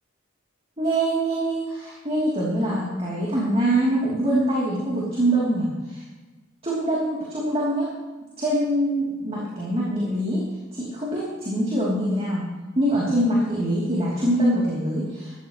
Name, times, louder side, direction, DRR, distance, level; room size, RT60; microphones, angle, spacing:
voice 1, 0.8-6.0 6.6-7.9 8.4-10.4 10.7-12.4 12.7-15.3, right 1 dB, 30° right, -6 dB, 3.1 m, -24 dB
16.5 x 13.5 x 3.1 m, 1.2 s
head